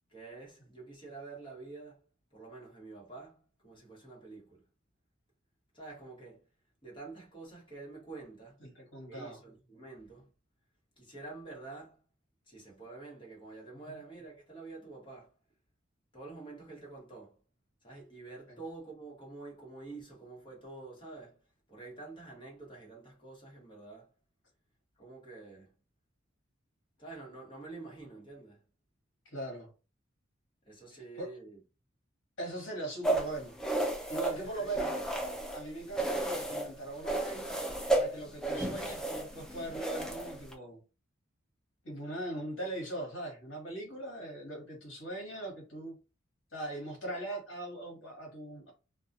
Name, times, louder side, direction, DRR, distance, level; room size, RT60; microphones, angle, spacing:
voice 1, 0.1-2.0 2.3-4.6 5.7-6.4 6.8-8.6 9.1-10.3 11.0-12.0 12.5-15.3 16.1-17.4 17.8-21.4 21.7-24.1 25.0-25.7 27.0-28.6 30.6-31.6 34.3-34.8, right 3 dB, 25° left, 1.0 m, -48 dB
voice 2, 8.6-9.4 13.9-14.0 29.2-29.7 31.2-31.3 32.4-33.6 34.1-35.0 35.5-37.5 37.9-40.8 41.8-46.0 46.5-48.7, right 1 dB, 65° left, 1.1 m, -40 dB
sound 1, 33.0-35.6 35.9-36.7 37.0-40.5, right 2 dB, 5° left, 0.4 m, -33 dB
2.3 x 2.2 x 2.6 m
head